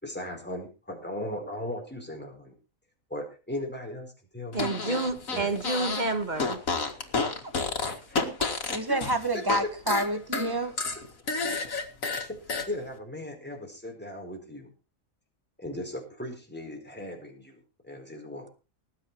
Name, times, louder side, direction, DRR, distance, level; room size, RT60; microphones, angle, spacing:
voice 1, 0.0-2.5 3.1-4.7 5.3-5.5 8.1-8.3 8.7-9.0 9.3-9.4 12.2-14.7 15.6-18.5, left 1 dB, 5° left, 4.7 m, -38 dB
Fart, 4.5-6.1 6.4-9.6 9.9-12.7, left 4 dB, 75° left, 2.4 m, -30 dB
voice 2, 4.5-6.6, right 3 dB, 35° right, 2.0 m, -29 dB
voice 3, 8.7-10.7, right 2 dB, 15° right, 1.5 m, -28 dB
19.0 x 9.1 x 4.6 m
omnidirectional pair, 1.4 m